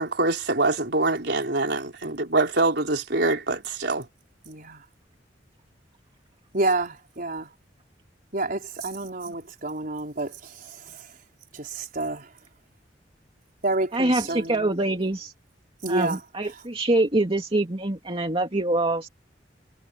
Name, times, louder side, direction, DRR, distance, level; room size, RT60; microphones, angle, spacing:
voice 1, 0.0-4.0 9.3-9.4, right 2 dB, 65° right, 5.1 m, -24 dB
voice 2, 4.4-4.8 6.5-7.5 8.3-10.3 11.6-12.2 13.6-14.7 15.8-16.2, right 2 dB, 50° right, 5.1 m, -28 dB
voice 3, 13.9-15.3 15.9-19.1, right 2 dB, 30° right, 2.4 m, -24 dB
head